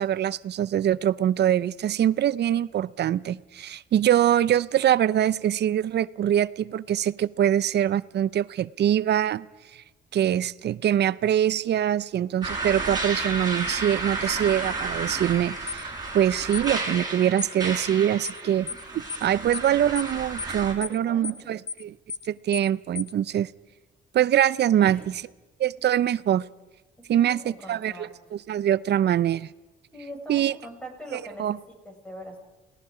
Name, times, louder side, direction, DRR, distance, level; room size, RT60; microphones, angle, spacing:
voice 1, 0.0-9.5 9.7-9.8 10.1-15.9 16.1-18.7 19.2-21.9 22.3-23.5 24.1-25.1 25.6-26.5 27.1-27.4 27.7-29.5 30.3-30.5 31.1-31.6, right 10 dB, 60° right, 19 dB, 0.6 m, -23 dB
sound 1, 12.4-20.7, right 3 dB, 20° right, 5.5 m, -32 dB
sound 2, 15.7-15.8 16.5-16.7 17.4-17.6 18.2-18.4 18.7-18.8 19.1-19.3 19.5-19.7 20.0-20.1 20.4-20.6 20.8-21.0 21.2-21.4 21.7-21.8 22.1-22.3 22.5-22.7 23.0-23.1, left 6 dB, 45° left, 0.6 m, -34 dB
voice 2, 18.4-19.0 20.7-21.5 24.8-25.1 27.2-28.1 29.9-32.4, equal, 5° left, 1 dB, 5.9 m, -42 dB
29.0 x 18.5 x 5.0 m, 1.1 s
cardioid pair, 90°, 20 cm